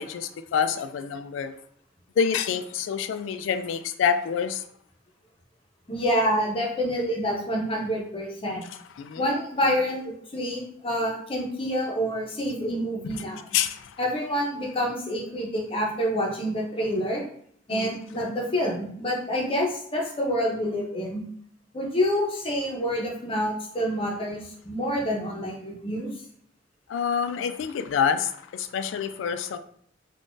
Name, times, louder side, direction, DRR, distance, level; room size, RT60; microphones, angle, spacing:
voice 1, 0.0-1.5 2.2-4.6 9.0-9.2 13.5-13.9 17.7-18.0 26.9-29.6, left 7 dB, 85° left, 11 dB, 0.3 m, -27 dB
voice 2, 5.9-8.6 9.2-13.5 14.0-17.2 17.7-21.2 21.7-26.1, equal, 30° left, -1 dB, 0.7 m, -27 dB
3.6 x 2.4 x 2.5 m, 0.63 s
head